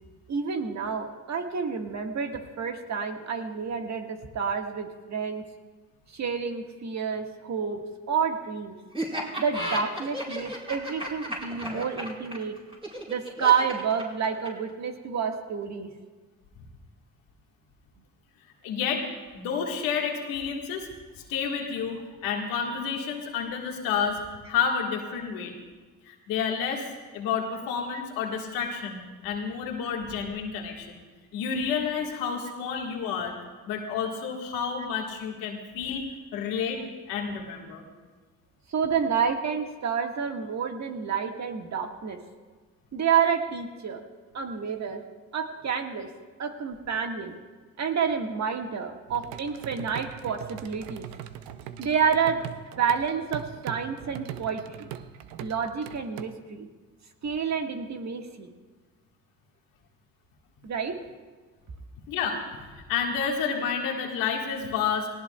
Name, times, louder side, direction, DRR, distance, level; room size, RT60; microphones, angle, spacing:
voice 1, 0.3-5.4 6.1-7.8 8.1-8.8 9.4-12.6 13.1-15.9 38.7-42.2 42.9-44.0 44.3-45.0 45.3-46.1 46.4-47.3 47.8-51.1 51.8-52.4 52.8-54.9 55.4-56.7 57.2-58.5 60.6-60.9, right 6 dB, 55° right, 4 dB, 1.6 m, -29 dB
Laughter, 8.9-14.7, equal, 15° right, 4.4 m, -33 dB
voice 2, 18.6-19.0 19.3-20.9 21.2-24.2 24.5-25.5 26.0-31.0 31.3-33.3 33.7-36.0 36.3-36.8 37.1-37.8 62.1-62.4 62.9-65.1, left 6 dB, 90° left, 1 dB, 1.6 m, -30 dB
sound 1, 49.1-56.2, right 11 dB, 90° right, 0.6 m, -41 dB
18.5 x 17.0 x 2.3 m, 1.3 s
supercardioid pair, 65°, 34 cm